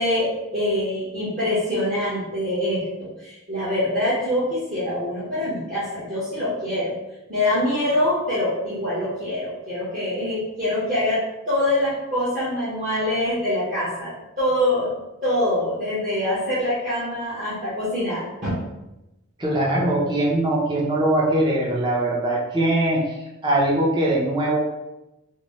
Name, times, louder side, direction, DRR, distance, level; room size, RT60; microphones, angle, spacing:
voice 1, 0.0-2.8 3.2-6.9 7.3-11.2 11.5-14.1 14.4-14.9 15.2-18.6, left 1 dB, 40° right, -12 dB, 1.2 m, -24 dB
voice 2, 19.4-23.0 23.4-24.6, right 1 dB, 20° right, -4 dB, 0.6 m, -21 dB
4.1 x 2.1 x 3.0 m, 0.94 s
head